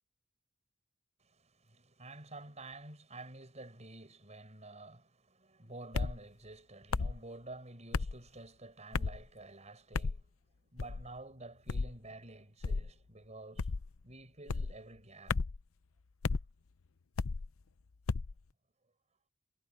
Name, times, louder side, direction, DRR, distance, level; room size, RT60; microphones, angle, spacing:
voice 1, 1.2-10.3 10.7-15.4, right 2 dB, 35° right, 6.5 m, -50 dB
sound 1, 5.9-6.2 6.9-7.2 7.9-8.2 8.9-9.2 9.9-10.2 10.8-11.1 11.7-11.9 12.6-12.9 13.6-13.9 14.5-14.7 15.3-15.6 16.2-16.4 17.2-17.5 18.1-18.3, left 4 dB, 85° left, 0.6 m, -33 dB
head